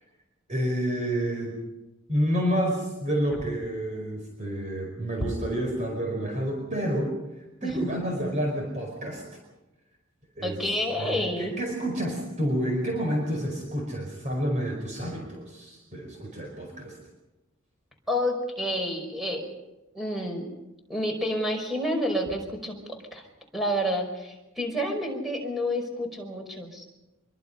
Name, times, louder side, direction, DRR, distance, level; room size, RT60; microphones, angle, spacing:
voice 1, 0.5-1.6 2.1-9.2 10.4-10.6 11.0-17.0, equal, 35° right, 1 dB, 4.9 m, -29 dB
voice 2, 10.4-11.6 18.1-19.4 19.9-20.5 20.9-23.2 23.5-26.8, equal, ahead, 2 dB, 5.0 m, -29 dB
26.0 x 23.0 x 5.5 m, 1.0 s
head